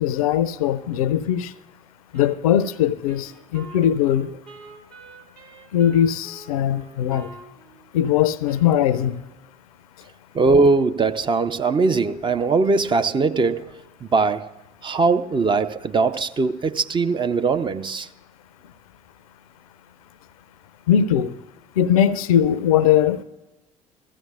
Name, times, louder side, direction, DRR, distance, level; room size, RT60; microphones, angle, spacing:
voice 1, 0.0-1.5 2.1-4.3 5.7-7.3 7.9-9.2 20.9-21.3 21.8-23.2, left 10 dB, 75° left, 0.5 m, -20 dB
Wind instrument woodwind instrument, 2.1-9.6, right 4 dB, 55° right, 2.2 m, -47 dB
voice 2, 10.3-13.7 14.0-14.5 14.8-18.1, right 4 dB, 25° right, 0.6 m, -20 dB
15.5 x 14.0 x 2.4 m
figure-of-eight pair, 55°, 19 cm